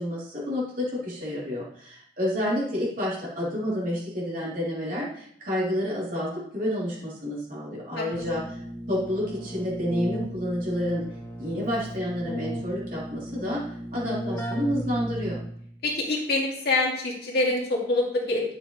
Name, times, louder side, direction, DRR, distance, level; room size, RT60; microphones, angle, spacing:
voice 1, 0.0-8.6 8.9-11.0 11.4-13.6 13.9-15.4, equal, 45° right, -6 dB, 3.5 m, -29 dB
Keyboard (musical), 8.1-15.7, equal, 15° left, 1.3 m, -35 dB
voice 2, 15.8-18.4, left 2 dB, 60° left, -2 dB, 2.5 m, -25 dB
11.0 x 7.3 x 3.3 m, 0.65 s
head